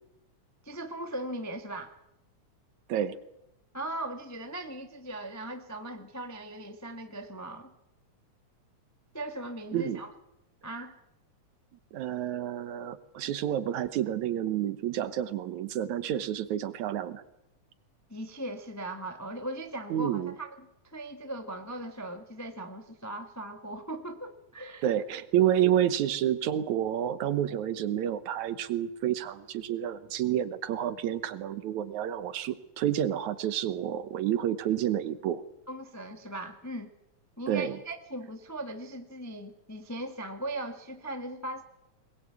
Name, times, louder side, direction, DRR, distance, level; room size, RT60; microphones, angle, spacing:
voice 1, 0.6-1.9 3.7-7.7 9.1-10.1 10.6-11.0 18.1-24.9 35.7-36.9 37.4-41.6, right 1 dB, 15° left, 6 dB, 0.5 m, -39 dB
voice 2, 11.9-17.2 19.9-20.3 24.8-35.4 37.5-37.8, right 11 dB, 75° right, 13 dB, 2.4 m, -29 dB
22.0 x 20.0 x 8.4 m, 0.87 s
omnidirectional pair, 3.4 m